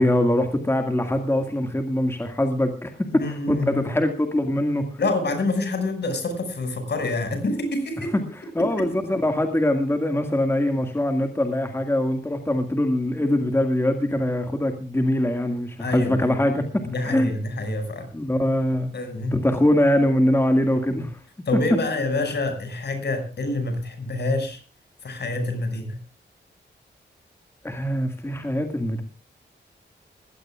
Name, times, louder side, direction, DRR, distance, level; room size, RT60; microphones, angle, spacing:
voice 1, 0.0-4.9 8.5-17.3 18.1-18.9 19.3-21.2 27.6-29.0, left 1 dB, 15° left, 5 dB, 1.9 m, -23 dB
voice 2, 3.1-3.9 5.0-8.1 8.6-8.9 15.8-16.4 16.8-18.1 18.9-19.4 20.8-20.9 21.5-24.6 25.0-26.0, left 2 dB, 60° left, 7 dB, 6.0 m, -27 dB
21.5 x 16.5 x 2.4 m, 0.37 s
wide cardioid pair, 155°, 19 cm